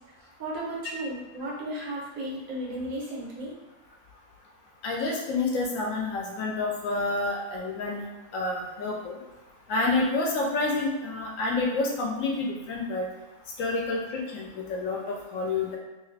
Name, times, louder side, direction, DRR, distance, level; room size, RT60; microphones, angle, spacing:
voice 1, 0.4-3.5, right 1 dB, 85° right, -4 dB, 1.3 m, -34 dB
voice 2, 4.8-8.1 8.3-9.1 9.7-13.1 13.6-15.8, left 3 dB, 75° left, -1 dB, 0.9 m, -28 dB
2.9 x 2.4 x 3.2 m, 1.1 s
omnidirectional pair, 1.4 m